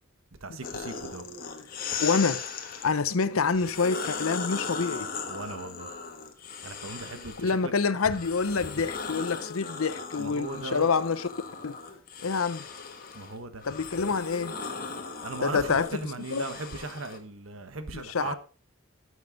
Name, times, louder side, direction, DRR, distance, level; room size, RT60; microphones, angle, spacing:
voice 1, 0.4-1.3 5.3-5.9 6.6-7.7 10.2-10.9 13.1-13.6 15.2-18.4, right 3 dB, 80° right, 1.2 m, -38 dB
sound 1, 0.6-2.9 3.5-7.6 8.0-17.2, left 5 dB, 45° left, 1.4 m, -38 dB
voice 2, 2.0-2.5 2.8-5.1 7.4-11.3 11.6-11.8 12.2-12.7 13.6-14.5 15.4-16.0 16.3-16.5 17.9-18.3, left 5 dB, 85° left, 0.7 m, -27 dB
13.5 x 6.5 x 3.8 m
head